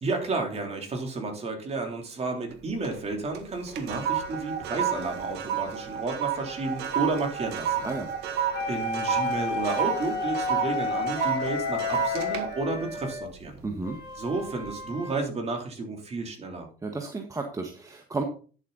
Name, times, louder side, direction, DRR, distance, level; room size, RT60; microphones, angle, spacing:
voice 1, 0.0-7.9 8.2-13.6 14.2-16.7, right 3 dB, 40° right, 2 dB, 3.5 m, -32 dB
sound 1, 2.5-3.0 3.3-13.9 14.4-14.7, right 8 dB, 80° right, 1.7 m, -31 dB
sound 2, 8.5-13.2 13.8-15.2, left 4 dB, 75° left, 3.7 m, -32 dB
voice 2, 13.6-14.0 16.8-18.2, right 3 dB, 20° right, 4 dB, 1.5 m, -32 dB
11.0 x 7.7 x 4.1 m, 0.39 s
cardioid pair, 110°, 17 cm